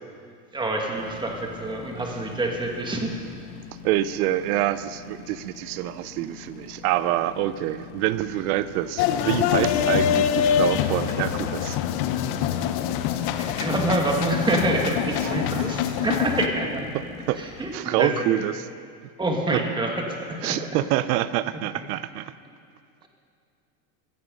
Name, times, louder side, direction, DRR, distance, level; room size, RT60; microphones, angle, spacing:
voice 1, 0.5-3.1 13.4-16.9 17.4-18.4 19.2-20.6 21.7-21.8, right 2 dB, 10° right, 1 dB, 1.9 m, -27 dB
sound 1, 0.9-17.8, left 10 dB, 75° left, 1.2 m, -43 dB
voice 2, 3.8-11.8 15.2-15.3 15.6-15.7 17.3-17.4 17.7-18.5 19.5-19.6 20.4-22.3, right 14 dB, 70° right, 14 dB, 0.6 m, -26 dB
sound 2, 9.0-16.5, left 9 dB, 50° left, 0.9 m, -24 dB
15.5 x 15.0 x 5.3 m, 2.3 s
supercardioid pair, 140°, 46 cm